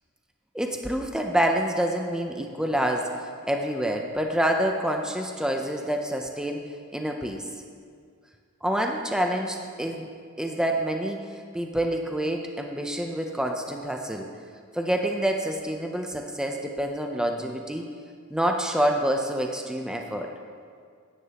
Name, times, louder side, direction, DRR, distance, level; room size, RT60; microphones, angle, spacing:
voice 1, 0.5-6.6 6.9-7.5 8.6-10.1 10.4-14.3 14.7-17.9 18.3-20.3, right 1 dB, 5° right, 2 dB, 0.5 m, -27 dB
16.5 x 10.0 x 2.9 m, 2.1 s
head